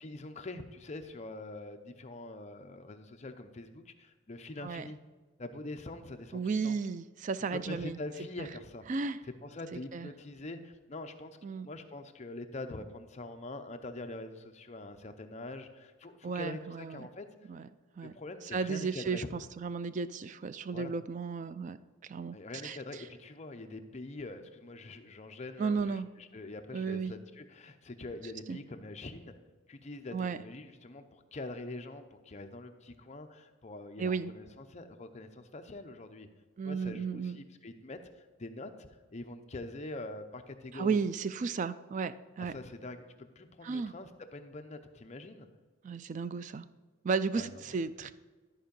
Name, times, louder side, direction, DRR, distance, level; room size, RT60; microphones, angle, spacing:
voice 1, 0.0-5.0 5.4-6.8 7.5-8.9 9.2-11.4 11.6-17.3 18.0-19.3 20.7-20.9 22.3-29.3 29.7-36.3 36.6-41.0 42.4-45.5 47.3-47.6, left 2 dB, 35° left, 6 dB, 0.6 m, -44 dB
voice 2, 6.3-8.0 8.9-9.2 9.9-10.1 11.4-11.7 16.2-17.1 17.5-17.7 18.0-18.1 18.5-21.8 22.0-22.4 22.6-22.8 25.6-26.1 26.7-27.1 28.5-28.6 30.1-30.4 34.0-34.3 36.6-37.4 40.7-42.5 43.6-43.9 45.8-46.7 47.0-48.1, right 5 dB, 35° right, 14 dB, 0.3 m, -34 dB
13.0 x 4.7 x 5.2 m, 1.3 s
head